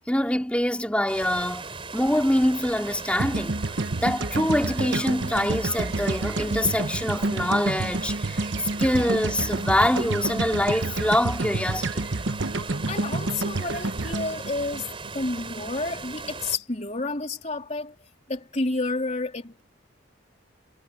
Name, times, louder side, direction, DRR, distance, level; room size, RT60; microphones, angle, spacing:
voice 1, 0.1-3.7 4.0-8.5 8.8-12.1, left 1 dB, 5° left, 2.7 m, -25 dB
sound 1, 1.1-16.6, right 4 dB, 25° right, 4.6 m, -38 dB
sound 2, 3.2-15.4, right 2 dB, 60° right, 1.0 m, -29 dB
voice 2, 12.9-18.0 18.3-19.6, left 2 dB, 35° left, 3.5 m, -30 dB
head